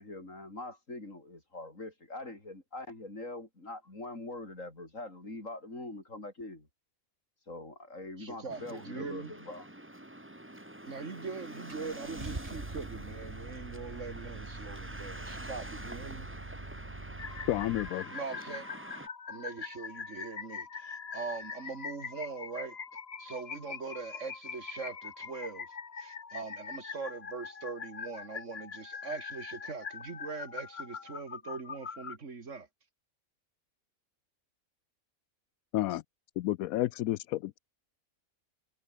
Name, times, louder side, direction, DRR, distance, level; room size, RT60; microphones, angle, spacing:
voice 1, 0.0-6.7 7.4-9.7, left 2 dB, 65° left, 6.0 m, -43 dB
voice 2, 8.2-9.3 10.9-16.3 18.1-18.7 19.3-22.8 23.2-32.7, right 4 dB, 60° right, 2.3 m, -42 dB
sound 1, 8.5-19.1, right 1 dB, 10° right, 1.9 m, -47 dB
Car / Engine starting, 11.0-11.1 11.7-17.9, right 2 dB, 25° right, 2.2 m, -44 dB
sound 2, 17.2-32.2, left 6 dB, 50° left, 1.6 m, -43 dB
voice 3, 17.5-18.1 35.7-36.0 36.4-37.6, left 15 dB, 85° left, 1.0 m, -31 dB
omnidirectional pair, 1.4 m